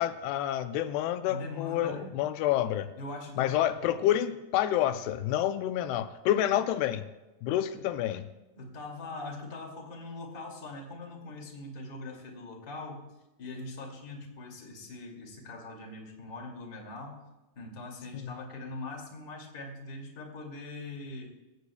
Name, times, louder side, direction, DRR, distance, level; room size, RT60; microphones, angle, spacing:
voice 1, 0.0-2.9 3.4-7.1 7.4-8.3 18.1-18.3, left 12 dB, 85° left, 10 dB, 2.7 m, -28 dB
voice 2, 1.3-2.1 3.0-3.8 7.7-7.9 8.6-13.1 13.4-21.3, left 2 dB, 30° left, 1 dB, 2.3 m, -42 dB
22.5 x 16.5 x 2.3 m, 1.1 s
omnidirectional pair, 4.6 m